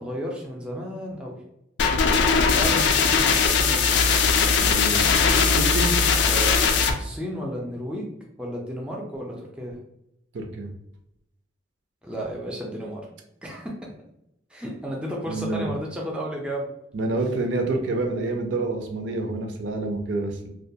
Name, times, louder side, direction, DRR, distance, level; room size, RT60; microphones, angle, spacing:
voice 1, 0.0-1.4 2.5-3.9 6.3-6.7 7.0-9.8 12.0-13.1 13.4-13.7 14.5-16.7, equal, 5° right, -2 dB, 0.3 m, -33 dB
sound 1, 1.8-6.9, left 5 dB, 70° left, 0.3 m, -20 dB
voice 2, 4.6-5.0 5.6-6.0 10.3-10.7 15.3-15.7 16.9-20.5, right 2 dB, 75° right, 4 dB, 0.4 m, -27 dB
2.2 x 2.2 x 2.6 m, 0.82 s
head